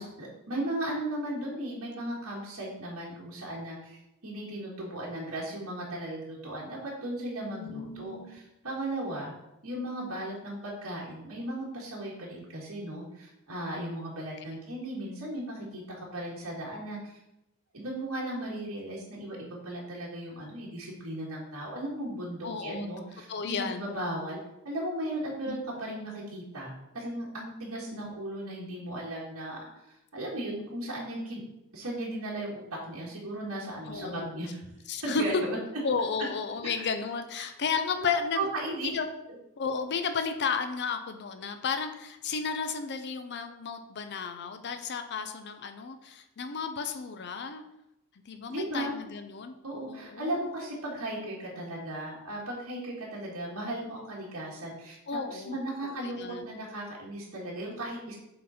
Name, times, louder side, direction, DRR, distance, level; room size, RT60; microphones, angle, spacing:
voice 1, 0.0-9.3 9.6-17.2 17.7-24.4 24.6-29.6 29.9-31.4 31.7-34.7 35.0-35.6 37.9-38.9 48.5-48.9 49.6-55.0 55.3-58.2, right 1 dB, 75° right, -5 dB, 1.7 m, -36 dB
voice 2, 7.5-8.4 14.5-14.6 22.4-22.9 23.3-23.9 25.5-25.6 27.9-28.1 33.8-34.3 34.9-35.2 35.8-38.5 38.8-39.1 39.6-47.6 48.3-49.6 49.8-50.5 55.1-55.6 55.8-56.5, left 5 dB, 50° left, 8 dB, 0.5 m, -33 dB
7.5 x 3.9 x 4.2 m, 0.89 s
head